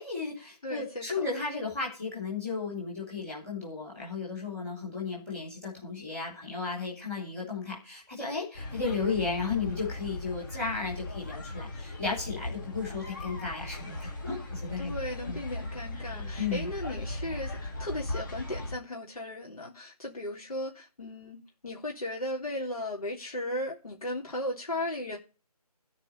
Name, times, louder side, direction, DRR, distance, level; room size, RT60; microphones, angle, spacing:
voice 1, 0.0-14.9 15.3-15.4 16.1-16.7, left 4 dB, 5° left, 3.0 m, -34 dB
voice 2, 0.6-1.3 14.8-25.2, left 1 dB, 65° left, 3.4 m, -36 dB
sound 1, 8.5-18.8, left 2 dB, 30° left, 2.5 m, -38 dB
13.5 x 5.0 x 8.8 m
figure-of-eight pair, 175°, 20 cm